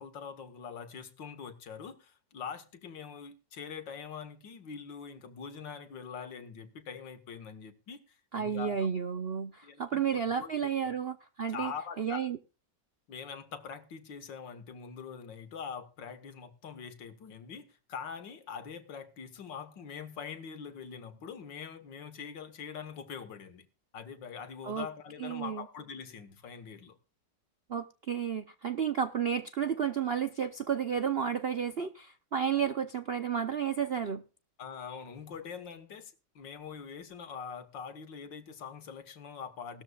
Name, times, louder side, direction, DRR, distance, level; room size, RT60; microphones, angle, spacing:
voice 1, 0.0-8.9 9.6-10.0 10.4-10.7 11.5-12.2 13.1-23.7 23.9-27.0 34.6-39.8, left 6 dB, 80° left, 2.1 m, -43 dB
voice 2, 8.3-11.7 12.0-12.4 24.6-24.9 25.2-25.6 27.7-34.2, right 7 dB, 60° right, 0.6 m, -32 dB
18.0 x 13.5 x 2.4 m
omnidirectional pair, 2.0 m